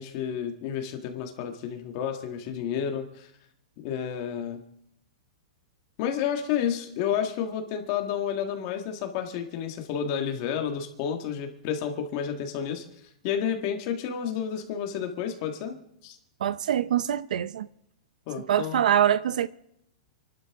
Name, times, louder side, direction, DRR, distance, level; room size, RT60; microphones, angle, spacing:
voice 1, 0.0-3.3 3.8-4.6 6.0-12.8 13.2-15.8 16.0-16.2 18.3-18.8, left 8 dB, 30° left, 1.6 m, -30 dB
voice 2, 16.4-17.7 18.5-19.5, right 10 dB, 65° right, 0.6 m, -24 dB
28.5 x 12.5 x 3.6 m
supercardioid pair, 175°, 4 cm